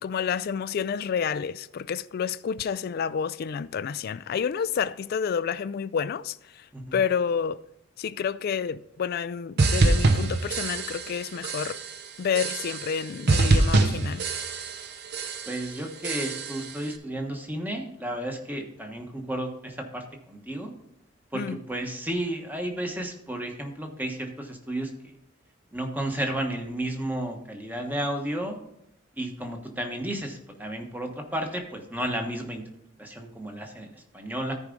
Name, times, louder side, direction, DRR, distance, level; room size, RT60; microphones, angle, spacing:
voice 1, 0.0-6.7 6.9-7.6 8.0-11.8 12.2-14.2 21.3-21.6, left 7 dB, 50° left, 0.3 m, -29 dB
sound 1, 9.6-11.2 11.4-11.9 12.3-13.0 13.3-14.9 15.1-15.6 16.0-16.7, right 2 dB, 55° right, 0.7 m, -24 dB
voice 2, 15.5-20.7 21.3-21.4 21.7-25.1 25.7-28.6 29.2-32.6 33.0-34.5, right 1 dB, 10° right, 1.1 m, -32 dB
13.5 x 4.9 x 3.8 m
head